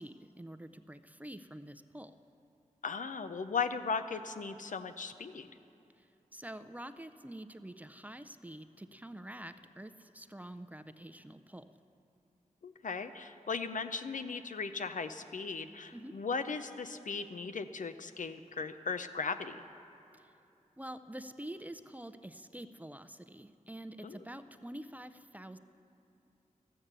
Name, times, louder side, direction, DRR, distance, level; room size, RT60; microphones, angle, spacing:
voice 1, 0.0-2.1 6.0-11.6 15.9-16.2 20.1-20.3 20.8-25.6, right 1 dB, 10° right, 10 dB, 0.5 m, -47 dB
voice 2, 2.8-5.5 12.6-19.6 24.0-24.2, left 5 dB, 65° left, 9 dB, 0.6 m, -37 dB
13.0 x 8.7 x 6.7 m, 2.8 s
cardioid pair, 45°, 14 cm